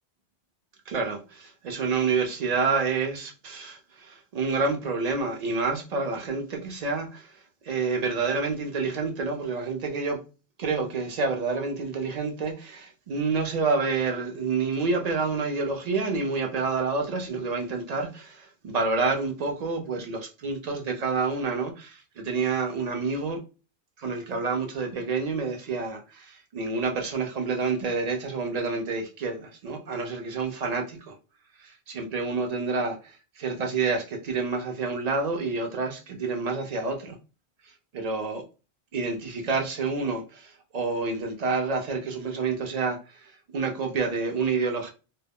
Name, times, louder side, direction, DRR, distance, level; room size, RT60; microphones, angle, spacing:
voice 1, 0.9-7.3 7.6-10.2 10.6-23.4 24.0-31.2 31.6-37.2 37.9-38.4 38.9-44.9, right 4 dB, 55° right, 0.5 m, -28 dB
2.1 x 2.0 x 3.4 m
omnidirectional pair, 1.1 m